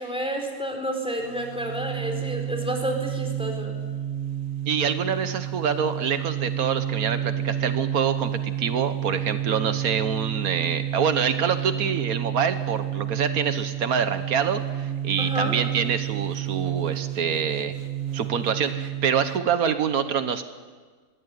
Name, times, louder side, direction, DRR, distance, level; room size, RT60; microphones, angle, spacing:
voice 1, 0.0-3.7 15.2-15.6, right 1 dB, 5° right, 2 dB, 4.1 m, -30 dB
sound 1, 1.2-19.5, right 11 dB, 50° right, 1.4 m, -30 dB
voice 2, 4.7-17.7 18.1-20.4, right 7 dB, 85° right, 10 dB, 1.6 m, -26 dB
22.0 x 16.0 x 9.6 m, 1.5 s
omnidirectional pair, 1.5 m